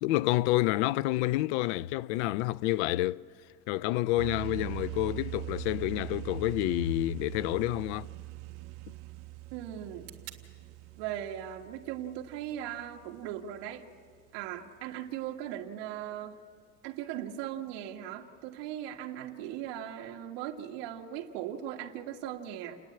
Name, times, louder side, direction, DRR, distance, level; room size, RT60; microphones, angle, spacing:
voice 1, 0.0-3.2 3.7-8.1, left 16 dB, 80° left, 0.5 m, -29 dB
sound 1, 4.2-13.7, right 19 dB, 75° right, 0.7 m, -42 dB
sound 2, 6.0-13.9, right 14 dB, 45° right, 2.4 m, -59 dB
voice 2, 9.5-10.1 11.0-13.8 14.3-16.4 16.8-22.8, right 11 dB, 60° right, 1.7 m, -38 dB
29.5 x 10.5 x 8.6 m
cardioid pair, 175°, 34 cm